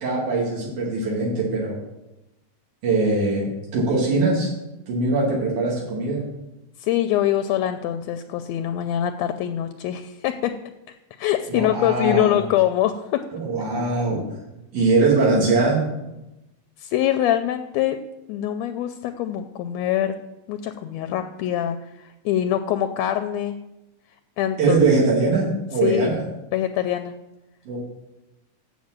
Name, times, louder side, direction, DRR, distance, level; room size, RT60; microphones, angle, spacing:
voice 1, 0.0-1.8 2.8-4.5 4.9-6.2 11.5-12.4 13.3-14.2 14.7-15.8 24.6-26.2 27.7-27.8, right 3 dB, 85° right, -5 dB, 3.7 m, -21 dB
voice 2, 6.8-10.5 10.9-13.2 16.8-18.0 18.3-20.1 20.5-23.6 24.4-24.8 25.8-26.1 26.5-27.1, left 11 dB, 80° left, 9 dB, 1.6 m, -24 dB
7.4 x 7.3 x 7.4 m, 0.96 s
omnidirectional pair, 3.4 m